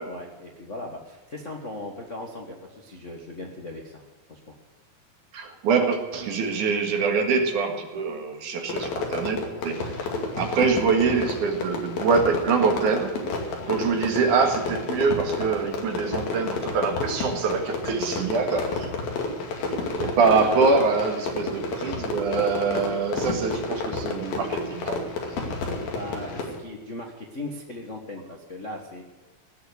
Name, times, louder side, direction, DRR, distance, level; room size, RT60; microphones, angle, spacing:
voice 1, 0.0-4.4 13.5-13.8 20.3-20.9 25.8-29.0, left 1 dB, 65° left, 2 dB, 0.7 m, -38 dB
voice 2, 5.3-9.4 9.6-9.8 10.4-13.1 13.6-18.9 20.0-25.0, right 5 dB, 65° right, 4 dB, 3.1 m, -24 dB
Fireworks, 8.7-26.6, left 3 dB, 90° left, 4.2 m, -31 dB
17.5 x 7.1 x 9.6 m, 1.3 s
omnidirectional pair, 4.1 m